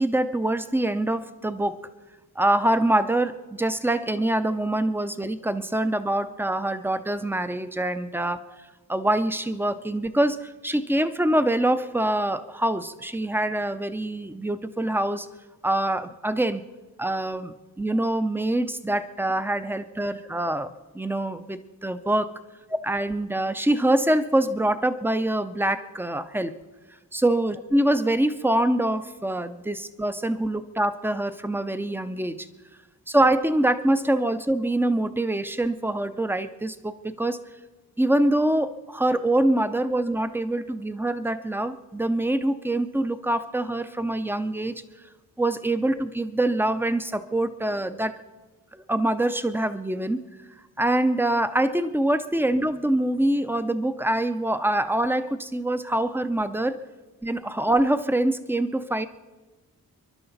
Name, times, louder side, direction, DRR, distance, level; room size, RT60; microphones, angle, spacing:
voice 1, 0.0-1.8 2.4-8.4 8.9-15.3 15.6-16.6 17.0-22.3 22.8-26.5 27.1-32.5 33.1-37.4 38.0-44.7 45.4-48.2 48.7-50.2 50.8-56.8 57.2-59.1, right 1 dB, 5° right, 11 dB, 0.5 m, -25 dB
28.0 x 12.0 x 4.0 m, 1.2 s
wide cardioid pair, 175°, 36 cm